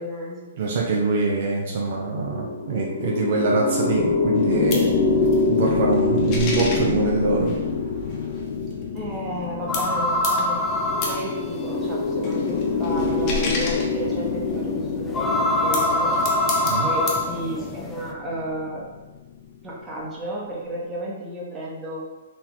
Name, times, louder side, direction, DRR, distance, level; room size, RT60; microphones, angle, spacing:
voice 1, 0.0-0.5 8.9-10.8 11.1-16.2 16.8-18.9 19.6-22.1, equal, 15° right, -5 dB, 1.2 m, -32 dB
voice 2, 0.6-4.9 5.5-7.5 16.6-16.9, right 3 dB, 55° right, -1 dB, 0.7 m, -24 dB
sound 1, 2.0-19.5, left 4 dB, 50° left, 0.7 m, -26 dB
sound 2, 4.4-9.5 9.7-14.7 15.4-17.3, left 3 dB, 30° left, 1.0 m, -33 dB
sound 3, 9.7-18.1, left 1 dB, 15° left, 0.4 m, -25 dB
4.3 x 2.9 x 3.7 m, 1.1 s
hypercardioid pair, 135°, 0 cm